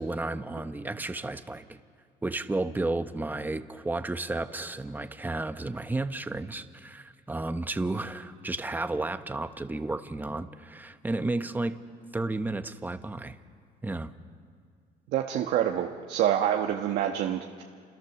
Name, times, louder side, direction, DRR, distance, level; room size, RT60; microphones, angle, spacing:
voice 1, 0.0-1.8 2.2-11.8 12.1-13.4 13.8-14.1, right 2 dB, 10° right, 9 dB, 1.1 m, -32 dB
voice 2, 15.1-17.6, right 10 dB, 80° right, 2 dB, 1.3 m, -27 dB
29.0 x 27.5 x 7.2 m, 2.1 s
cardioid pair, 110°, 17 cm